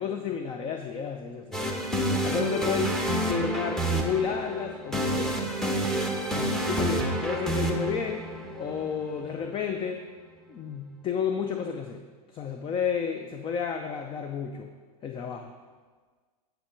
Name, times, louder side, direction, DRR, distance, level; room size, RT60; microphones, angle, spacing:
voice 1, 0.0-1.7 2.2-5.5 6.3-8.3 8.6-10.0 10.5-12.1 12.3-14.7 15.0-15.5, left 7 dB, 25° left, 5 dB, 0.5 m, -31 dB
sound 1, 1.5-9.4, right 1 dB, ahead, 1.0 m, -29 dB
9.1 x 4.5 x 5.1 m, 1.5 s
hypercardioid pair, 105°, 20 cm